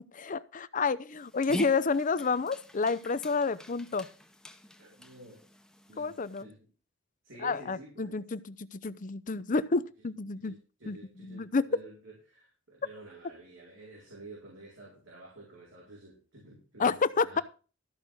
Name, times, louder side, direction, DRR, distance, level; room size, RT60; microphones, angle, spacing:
voice 1, 0.1-4.1 6.0-6.5 7.4-10.6 10.9-11.7 16.8-17.4, left 4 dB, 40° left, 0.6 m, -30 dB
Dog, 1.1-6.4, equal, 5° left, 0.9 m, -45 dB
voice 2, 4.8-5.4 5.9-6.1 6.4-6.7 7.2-8.2 10.3-17.4, right 2 dB, 90° right, 4.7 m, -50 dB
13.5 x 5.4 x 6.3 m
head